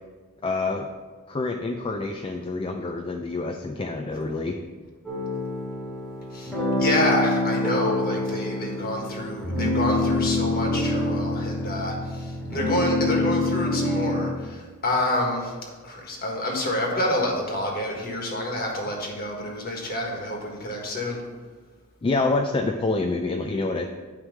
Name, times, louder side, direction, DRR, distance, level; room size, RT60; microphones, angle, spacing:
voice 1, 0.4-0.9 1.3-4.6 22.0-23.9, left 3 dB, 25° left, 4 dB, 0.4 m, -27 dB
sound 1, 5.0-14.3, left 2 dB, ahead, 1.8 m, -26 dB
voice 2, 6.3-15.5 15.8-21.2, left 1 dB, 45° left, 0 dB, 1.5 m, -28 dB
9.5 x 3.2 x 6.5 m, 1.4 s
head